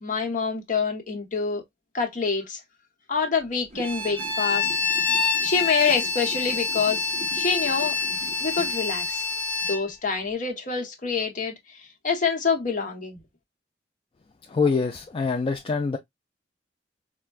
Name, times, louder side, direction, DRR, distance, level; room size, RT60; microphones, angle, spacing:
voice 1, 0.0-1.6 1.9-2.6 3.1-4.7 5.4-7.1 7.3-8.0 8.4-9.2 9.7-11.8 12.0-13.2, left 5 dB, 45° left, 0.9 m, -26 dB
sound 1, 3.7-8.7, right 1 dB, 40° right, 1.1 m, -44 dB
Bowed string instrument, 3.8-9.8, left 5 dB, 10° left, 1.0 m, -26 dB
voice 2, 14.5-16.0, left 4 dB, 30° left, 0.3 m, -25 dB
4.4 x 2.1 x 2.3 m
head